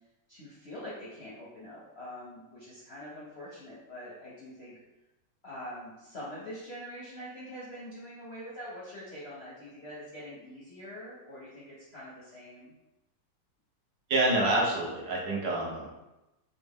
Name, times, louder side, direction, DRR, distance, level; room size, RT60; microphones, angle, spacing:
voice 1, 0.3-4.8 5.4-12.7, equal, 55° left, -8 dB, 0.7 m, -44 dB
voice 2, 14.1-15.9, right 1 dB, 75° right, -4 dB, 1.5 m, -27 dB
4.0 x 2.0 x 3.5 m, 0.99 s
omnidirectional pair, 2.0 m